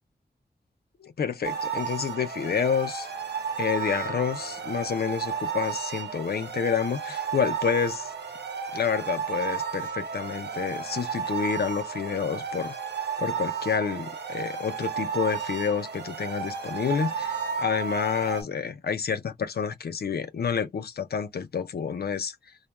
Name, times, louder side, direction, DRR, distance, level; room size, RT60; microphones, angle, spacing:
voice 1, 1.0-3.1 3.6-8.1 8.7-12.8 13.2-22.4, left 7 dB, 65° left, 0.5 m, -29 dB
sound 1, 1.4-18.4, right 6 dB, 85° right, 0.8 m, -33 dB
2.2 x 2.2 x 3.0 m
wide cardioid pair, 95°, 17 cm